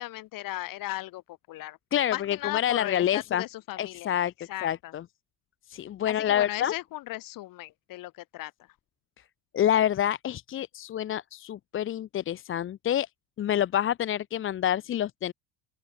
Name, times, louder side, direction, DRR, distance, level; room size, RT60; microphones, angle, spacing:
voice 1, 0.0-1.8 2.1-4.1 4.4-4.9 6.1-8.5, left 17 dB, 50° left, 7.6 m, -37 dB
voice 2, 1.9-3.4 3.8-4.3 4.6-5.0 5.7-6.7 9.5-13.1 13.4-15.3, left 10 dB, 30° left, 1.1 m, -27 dB
open air
cardioid pair, 150°, 41 cm